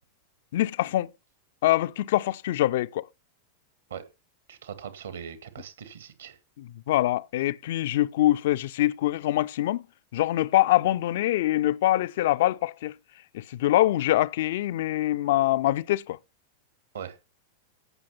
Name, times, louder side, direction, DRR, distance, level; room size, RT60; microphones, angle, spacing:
voice 1, 0.5-1.1 1.6-3.1 6.6-9.8 10.1-13.0 13.3-16.2, left 14 dB, 55° left, 0.5 m, -24 dB
voice 2, 4.5-6.4 16.9-17.2, right 8 dB, 65° right, 2.1 m, -40 dB
16.0 x 6.5 x 5.6 m
figure-of-eight pair, 90°, 0 cm